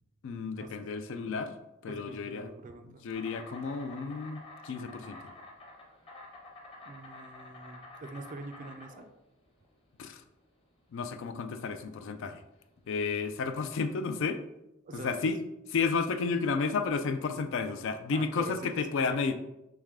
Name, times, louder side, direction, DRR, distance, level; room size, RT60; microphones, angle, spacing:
voice 1, 0.2-2.5 3.0-5.2 10.0-10.2 10.9-12.4 12.9-14.4 14.9-15.4 15.7-19.3, left 4 dB, 60° left, 9 dB, 0.4 m, -32 dB
voice 2, 1.9-3.0 6.8-9.0 14.8-15.3 18.1-18.7 19.1-19.2, right 3 dB, 40° right, 7 dB, 0.4 m, -45 dB
Insect, 3.1-13.1, left 2 dB, 25° left, 0.8 m, -50 dB
3.5 x 3.1 x 3.5 m, 0.90 s
head